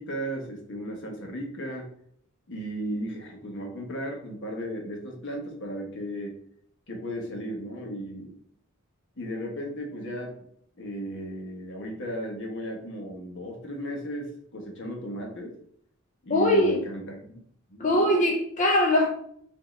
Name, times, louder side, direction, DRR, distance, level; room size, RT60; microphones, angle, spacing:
voice 1, 0.0-1.9 2.5-6.4 6.9-8.3 9.2-10.4 10.8-15.6 16.2-17.4 17.7-17.8, equal, 60° left, 2 dB, 1.1 m, -35 dB
voice 2, 16.3-16.8 17.8-19.1, left 1 dB, 35° left, 1 dB, 0.5 m, -21 dB
4.7 x 2.8 x 3.1 m, 0.66 s
head